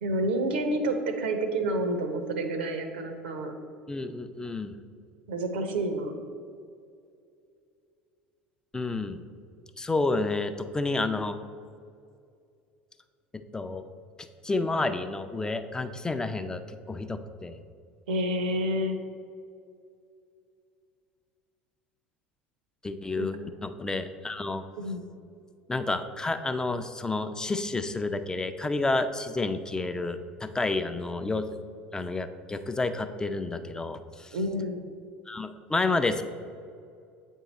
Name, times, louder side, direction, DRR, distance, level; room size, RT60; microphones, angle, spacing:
voice 1, 0.0-3.5 5.3-6.2 18.1-19.0 23.2-23.3 24.8-25.0 34.3-34.8, right 1 dB, 75° right, 7 dB, 0.7 m, -29 dB
voice 2, 3.9-4.8 8.7-9.2 9.8-11.4 13.3-13.8 14.2-17.6 22.8-24.6 25.7-31.6 31.9-34.4 35.3-36.2, left 3 dB, 10° left, 9 dB, 0.4 m, -30 dB
8.3 x 3.7 x 4.0 m, 2.4 s
figure-of-eight pair, 70°, 6 cm